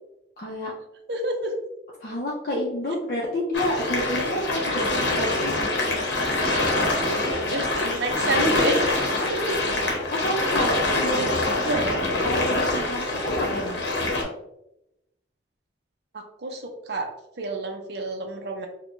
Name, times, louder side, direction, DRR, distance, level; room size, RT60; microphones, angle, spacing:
voice 1, 0.4-0.7 2.0-5.5 8.3-8.6 9.2-9.3 10.1-11.3 12.2-13.8, equal, 50° left, -4 dB, 0.6 m, -29 dB
voice 2, 1.1-1.5 6.9-8.8 9.3-9.6 11.1-12.0 16.1-17.1 17.4-18.7, right 2 dB, 55° right, 3 dB, 0.5 m, -29 dB
sound 1, 3.5-14.2, left 2 dB, 70° left, 0.8 m, -25 dB
4.4 x 2.2 x 2.5 m, 0.85 s
head